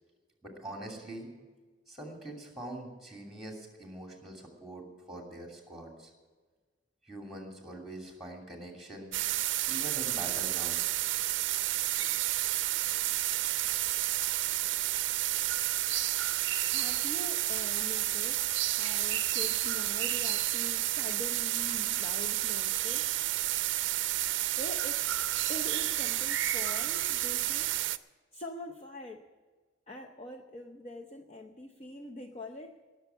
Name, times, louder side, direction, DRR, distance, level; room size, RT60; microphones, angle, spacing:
voice 1, 0.4-1.3 1.9-6.1 7.0-9.1 9.7-10.9, right 1 dB, ahead, 1 dB, 2.7 m, -44 dB
sound 1, 9.1-28.0, right 14 dB, 65° right, 0.5 m, -30 dB
voice 2, 16.7-23.2 24.6-25.1 25.5-27.7 28.3-29.3 29.9-32.8, left 1 dB, 30° left, 2 dB, 0.7 m, -44 dB
17.5 x 7.0 x 9.2 m, 1.4 s
head